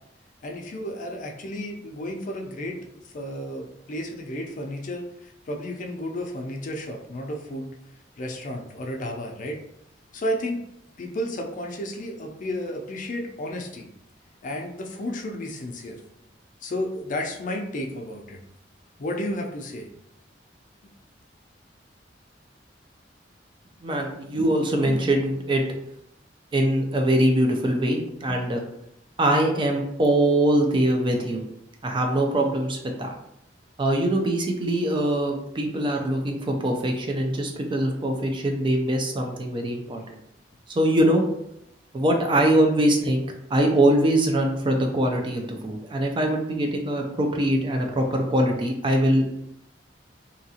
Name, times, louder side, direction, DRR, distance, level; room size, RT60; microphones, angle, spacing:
voice 1, 0.4-7.7 8.2-9.6 10.1-10.6 11.0-13.9 14.4-16.0 16.6-18.4 19.0-19.9, left 1 dB, 45° left, 2 dB, 0.4 m, -32 dB
voice 2, 23.8-25.6 26.5-28.6 29.2-31.4 31.8-33.1 33.8-40.0 40.8-41.2 41.9-43.2 43.5-49.3, right 1 dB, 30° right, 2 dB, 0.4 m, -22 dB
2.7 x 2.4 x 2.7 m, 0.78 s
head